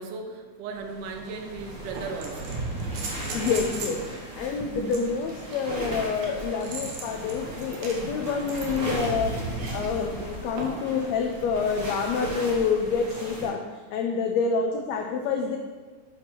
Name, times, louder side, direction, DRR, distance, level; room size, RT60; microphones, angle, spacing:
voice 1, 0.0-2.6, right 4 dB, 90° right, 3 dB, 2.2 m, -36 dB
sound 1, 0.9-13.5, right 2 dB, 35° right, 1.8 m, -36 dB
sound 2, 0.9-1.0 1.9-4.0 4.9-9.9 10.6-10.9 12.6-12.7, right 3 dB, 70° right, 2.2 m, -39 dB
voice 2, 3.3-9.4 9.7-15.6, left 5 dB, 85° left, 4 dB, 1.5 m, -27 dB
6.2 x 4.4 x 5.9 m, 1.4 s
omnidirectional pair, 3.6 m